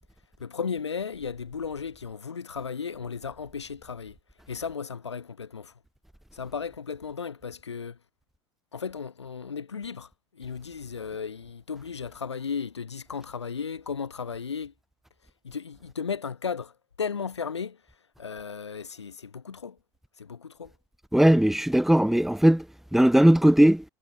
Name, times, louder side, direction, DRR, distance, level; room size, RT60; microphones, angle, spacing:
voice 1, 0.4-4.2 4.5-5.7 6.3-8.0 8.7-14.7 15.4-17.8 18.2-19.8 20.2-20.7, left 6 dB, 80° left, 3.7 m, -35 dB
voice 2, 21.1-22.6 22.9-23.8, right 1 dB, ahead, 0.9 m, -18 dB
figure-of-eight pair, 75°, 14 cm